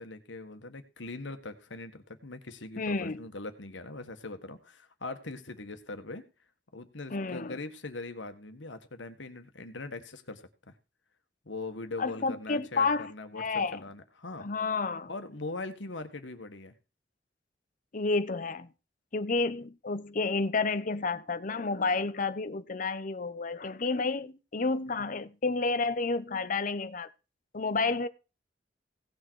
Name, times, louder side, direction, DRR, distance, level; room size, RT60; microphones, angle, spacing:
voice 1, 0.0-6.3 6.7-10.7 11.5-14.5 15.1-16.7 25.0-25.1, left 3 dB, 90° left, 1.6 m, -41 dB
voice 2, 2.8-3.2 7.1-7.6 12.0-13.8 14.4-15.1 17.9-18.7 19.1-27.1 27.5-28.1, left 3 dB, 45° left, 0.8 m, -30 dB
17.0 x 6.6 x 4.7 m
head